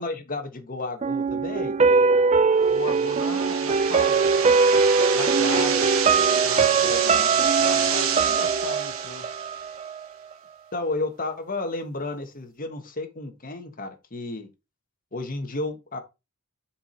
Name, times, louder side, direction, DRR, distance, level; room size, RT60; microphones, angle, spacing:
voice 1, 0.0-1.7 5.1-5.9 6.8-7.4 10.7-14.5 15.1-16.0, left 2 dB, 40° left, 1.4 m, -32 dB
sound 1, 1.0-10.0 10.3-10.4, right 4 dB, 30° right, 0.4 m, -21 dB
voice 2, 2.7-4.4 6.4-6.9 7.6-9.3, left 4 dB, 55° left, 0.9 m, -37 dB
sound 2, 2.7-9.7, right 8 dB, 65° right, 1.4 m, -28 dB
7.1 x 4.7 x 4.3 m
head